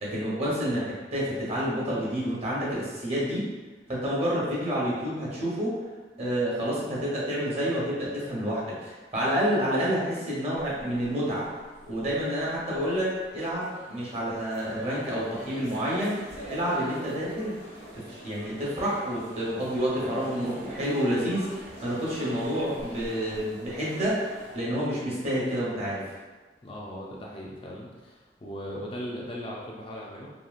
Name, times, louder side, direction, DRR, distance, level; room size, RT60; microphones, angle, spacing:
voice 1, 0.0-3.4 3.9-5.8 6.2-11.4 11.8-16.2 16.5-17.5 17.9-24.2 24.5-26.0, equal, 35° right, -7 dB, 0.9 m, -29 dB
sound 1, 10.6-24.6, right 1 dB, 65° right, 0.8 m, -45 dB
voice 2, 26.6-30.3, equal, 30° left, -3 dB, 0.3 m, -38 dB
2.9 x 2.7 x 2.3 m, 1.3 s
head